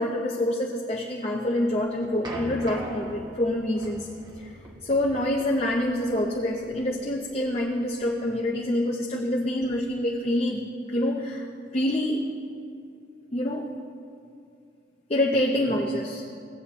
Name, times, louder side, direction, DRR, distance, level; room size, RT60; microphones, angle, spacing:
voice 1, 0.0-4.1 4.4-4.5 4.8-11.5 11.7-12.2 13.3-13.7 15.1-16.2, left 1 dB, 30° left, -2 dB, 0.6 m, -26 dB
sound 1, 1.6-8.4, right 1 dB, 20° right, 0.9 m, -42 dB
16.0 x 8.5 x 2.9 m, 2.4 s
head